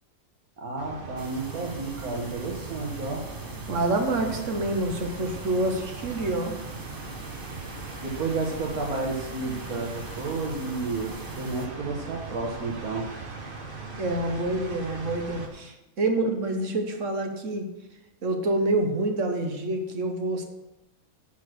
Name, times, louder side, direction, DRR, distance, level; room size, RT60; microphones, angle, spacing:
voice 1, 0.6-3.3 8.0-13.1, right 3 dB, 80° right, -1 dB, 1.8 m, -31 dB
sound 1, 0.8-15.5, right 3 dB, 40° right, 1.4 m, -39 dB
sound 2, 1.2-11.7, right 2 dB, 25° right, 0.5 m, -44 dB
voice 2, 3.7-6.5 14.0-17.7 18.2-20.4, right 2 dB, 60° right, 4 dB, 1.5 m, -27 dB
8.2 x 6.1 x 6.5 m, 0.97 s
omnidirectional pair, 1.5 m